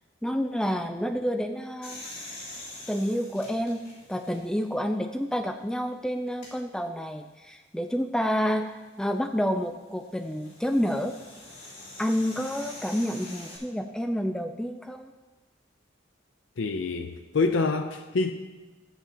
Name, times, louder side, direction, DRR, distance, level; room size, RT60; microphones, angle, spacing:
voice 1, 0.2-2.0 2.9-3.8 4.1-11.2 12.0-15.1, equal, 5° left, 6 dB, 0.3 m, -29 dB
sound 1, 1.8-4.7 5.3-5.4 6.3-6.5 8.7-13.6, left 2 dB, 40° left, 3.6 m, -45 dB
voice 2, 16.6-18.3, left 3 dB, 70° left, 5 dB, 0.5 m, -26 dB
14.0 x 9.0 x 2.9 m, 1.2 s
head